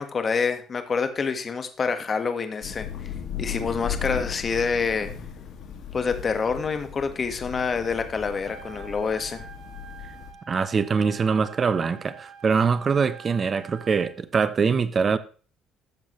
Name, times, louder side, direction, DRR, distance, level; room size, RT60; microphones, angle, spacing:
voice 1, 0.0-2.9 3.4-5.1 5.9-9.4, left 5 dB, 35° left, 1.5 m, -27 dB
Thunder / Rain, 2.6-10.3, left 8 dB, 65° left, 2.2 m, -36 dB
Trumpet, 8.3-14.1, right 7 dB, 60° right, 2.2 m, -46 dB
voice 2, 10.5-15.2, right 5 dB, 35° right, 0.9 m, -23 dB
13.5 x 7.5 x 3.2 m
cardioid pair, 95°, 0 cm